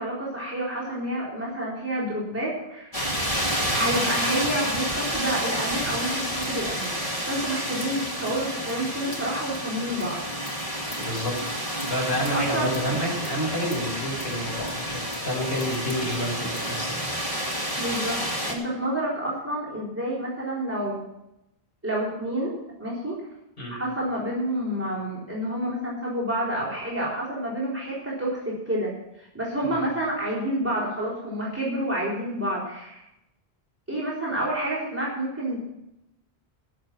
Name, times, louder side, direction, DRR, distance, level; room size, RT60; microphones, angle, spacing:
voice 1, 0.0-2.9 3.7-10.2 12.3-12.7 17.8-21.0 21.8-23.2 23.7-28.9 29.2-33.0 33.9-35.7, right 1 dB, 15° right, -7 dB, 3.9 m, -29 dB
sound 1, 2.9-18.5, equal, 35° left, 2.2 m, -30 dB
voice 2, 11.0-17.1 23.6-23.7 29.7-29.8, equal, 65° left, -2 dB, 5.4 m, -29 dB
18.0 x 7.5 x 5.9 m, 0.87 s
omnidirectional pair, 1.0 m